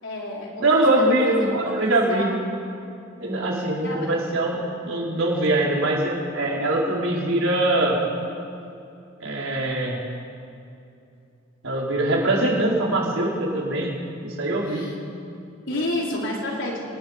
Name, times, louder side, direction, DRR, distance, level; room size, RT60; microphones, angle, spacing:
voice 1, 0.0-2.4 3.8-4.1 14.6-14.9 15.7-16.8, left 1 dB, 65° left, -3 dB, 4.4 m, -31 dB
voice 2, 0.6-2.3 3.2-8.0 9.2-10.0 11.6-13.9 14.2-14.9, right 1 dB, 85° right, -3 dB, 4.7 m, -22 dB
25.0 x 20.5 x 5.3 m, 2.6 s
head